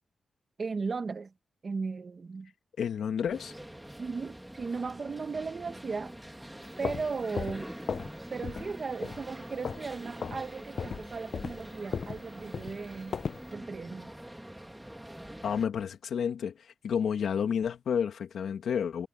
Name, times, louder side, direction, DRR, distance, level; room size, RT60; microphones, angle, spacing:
voice 1, 0.6-1.3 1.6-2.5 4.0-6.2 6.8-7.7 8.3-13.2 13.5-14.1, right 4 dB, 45° right, 1.2 m, -36 dB
voice 2, 2.8-3.5 15.4-16.5 16.8-19.1, left 7 dB, 85° left, 2.3 m, -30 dB
sound 1, 3.3-15.7, right 1 dB, 5° right, 1.8 m, -45 dB
sound 2, 6.6-8.2 8.4-8.7 9.0-9.9 10.2-10.4 10.8-13.5, left 6 dB, 60° left, 0.6 m, -36 dB
wide cardioid pair, 120°, 0 cm